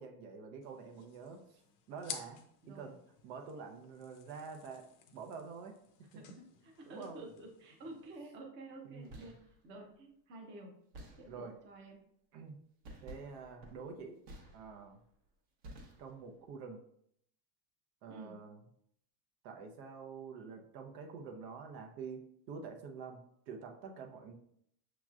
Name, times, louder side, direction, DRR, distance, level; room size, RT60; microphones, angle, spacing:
voice 1, 0.0-1.4 1.9-2.4 2.7-3.0 3.2-4.8 5.1-5.7 6.9-7.2 8.9-9.1 11.3-11.5 12.3-12.6 13.0-14.2 14.5-15.0 16.0-16.8 18.0-18.6 19.4-22.2 22.5-23.2 23.5-24.3, right 5 dB, 75° right, 4 dB, 0.9 m, -47 dB
sound 1, 0.6-8.2, left 8 dB, 40° left, 0.5 m, -53 dB
voice 2, 6.1-10.7 11.2-12.0 18.1-18.4, right 2 dB, 25° right, 1 dB, 0.6 m, -50 dB
sound 2, 8.9-9.6 10.9-11.7 12.8-15.0 15.6-16.4, right 1 dB, 50° right, 1.0 m, -53 dB
6.1 x 3.0 x 2.4 m, 0.70 s
supercardioid pair, 150°, 48 cm